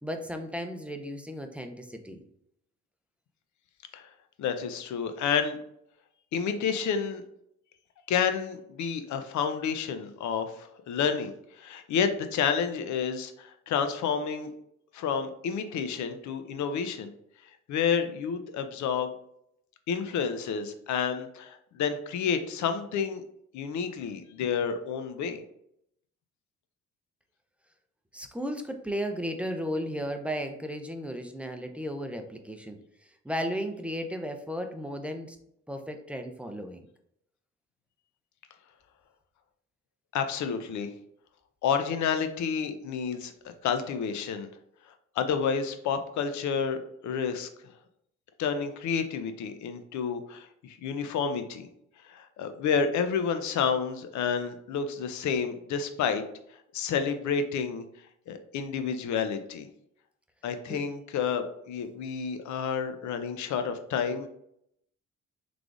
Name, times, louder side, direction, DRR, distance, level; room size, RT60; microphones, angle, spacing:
voice 1, 0.0-2.2 28.1-32.8 33.2-35.4 35.7-36.9 60.7-60.8, equal, 5° right, 5 dB, 0.5 m, -34 dB
voice 2, 4.4-5.6 6.3-7.2 8.1-11.3 11.6-14.5 14.9-17.1 17.7-19.1 19.9-23.2 23.5-25.4 40.1-40.9 41.6-43.3 43.6-44.5 45.2-47.5 48.4-51.7 52.0-56.2 56.7-57.8 58.3-59.7 60.4-64.3, left 6 dB, 70° left, 8 dB, 0.6 m, -30 dB
3.7 x 3.3 x 2.4 m, 0.73 s
cardioid pair, 90°, 30 cm